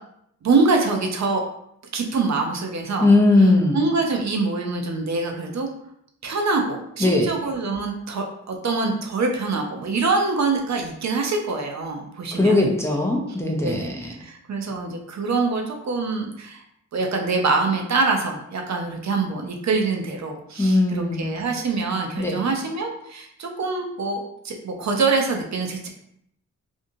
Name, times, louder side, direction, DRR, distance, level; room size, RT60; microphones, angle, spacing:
voice 1, 0.4-1.4 1.9-3.1 3.7-5.7 6.2-12.6 13.6-16.6 16.9-25.9, right 3 dB, 65° right, 2 dB, 0.5 m, -24 dB
voice 2, 3.0-3.8 7.0-7.3 12.4-14.1 20.6-21.3 22.2-22.4, left 2 dB, 10° left, -2 dB, 0.5 m, -19 dB
2.6 x 2.6 x 2.5 m, 0.73 s
wide cardioid pair, 100°, 31 cm